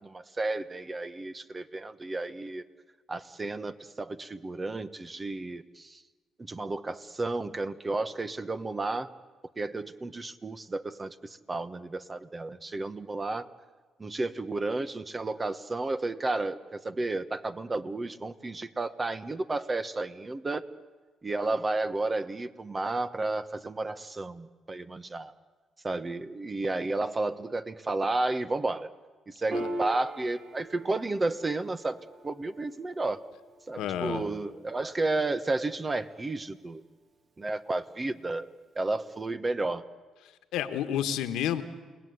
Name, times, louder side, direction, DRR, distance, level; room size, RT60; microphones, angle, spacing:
voice 1, 0.0-2.6 3.1-6.0 6.5-9.1 9.6-13.5 14.0-20.6 21.2-25.3 25.8-28.9 29.3-33.2 33.7-36.8 37.4-38.5 38.7-39.8, right 2 dB, 25° right, 12 dB, 1.3 m, -32 dB
Piano, 29.5-36.4, right 1 dB, 50° right, 2.6 m, -42 dB
voice 2, 33.8-34.2 40.5-41.6, left 10 dB, 90° left, 9 dB, 1.6 m, -30 dB
29.5 x 19.0 x 9.6 m, 1.3 s
cardioid pair, 90°, 0 cm